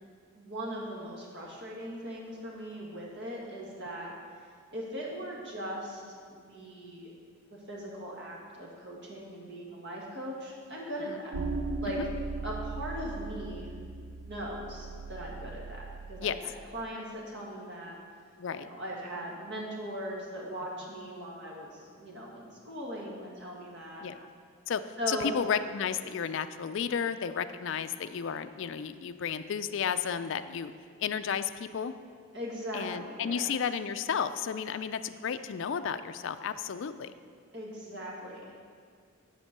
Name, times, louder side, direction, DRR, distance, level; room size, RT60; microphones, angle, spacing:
voice 1, 0.3-7.1 7.5-11.3 11.8-12.0 12.4-13.7 14.2-16.3 16.7-18.0 18.5-24.1 25.0-25.3 32.3-33.5 37.5-38.5, equal, 50° right, -3 dB, 1.7 m, -39 dB
sound 1, 11.3-16.4, right 3 dB, 70° right, 0.5 m, -38 dB
voice 2, 25.1-30.7 31.0-31.9 32.7-37.1, left 7 dB, 55° left, 11 dB, 0.3 m, -32 dB
10.0 x 4.4 x 6.6 m, 2.1 s
head